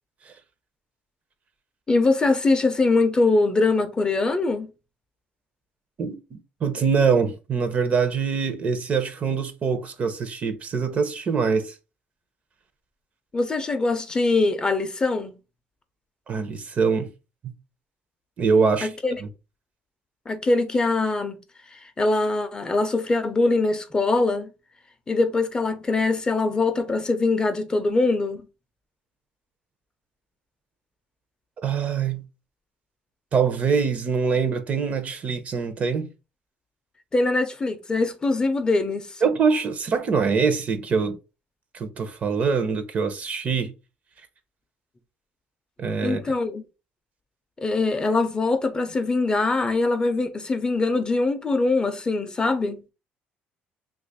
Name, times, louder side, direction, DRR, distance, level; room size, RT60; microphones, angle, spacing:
voice 1, 1.9-4.7 13.3-15.4 18.8-19.2 20.3-21.4 21.7-24.5 25.1-28.5 37.1-39.2 46.0-46.6 47.6-52.8, left 3 dB, 25° left, 0.5 m, -23 dB
voice 2, 6.0-11.7 16.3-17.1 18.4-18.9 19.2-19.3 31.6-32.2 33.3-36.1 39.2-41.2 41.7-43.7 45.8-46.2, right 5 dB, 40° right, 0.6 m, -24 dB
2.9 x 2.4 x 4.0 m
cardioid pair, 110°, 4 cm